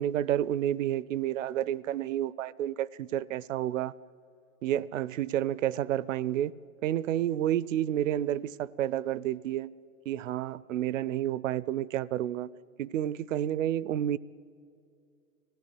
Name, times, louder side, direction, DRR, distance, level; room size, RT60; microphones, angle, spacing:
voice 1, 0.0-3.9 4.6-6.5 6.8-9.7 10.1-12.5 12.8-14.2, right 11 dB, 55° right, 0.6 m, -30 dB
24.5 x 16.0 x 9.7 m
hypercardioid pair, 135°, 47 cm